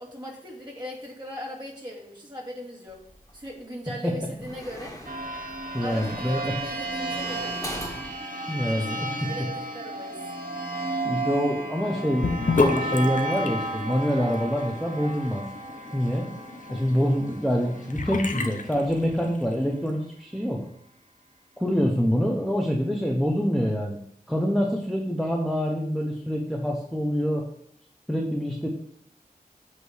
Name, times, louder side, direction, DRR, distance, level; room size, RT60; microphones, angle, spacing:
voice 1, 0.0-3.0 3.3-5.0 5.8-7.6 8.7-10.2, left 1 dB, 30° right, -4 dB, 2.5 m, -39 dB
sound 1, 2.9-3.5 4.2-8.1, equal, 20° left, 1.9 m, -41 dB
sound 2, 5.0-18.3, right 2 dB, 70° right, 1.0 m, -33 dB
voice 2, 5.7-6.5 8.5-9.3 11.0-15.4 15.9-16.3 16.7-20.6 21.6-24.0 24.3-27.5 28.1-28.7, equal, ahead, -1 dB, 1.0 m, -26 dB
Sink (filling or washing) / Bathtub (filling or washing), 12.2-19.5, left 4 dB, 60° left, 0.8 m, -32 dB
8.3 x 3.1 x 6.4 m, 0.68 s
wide cardioid pair, 60°, 15 cm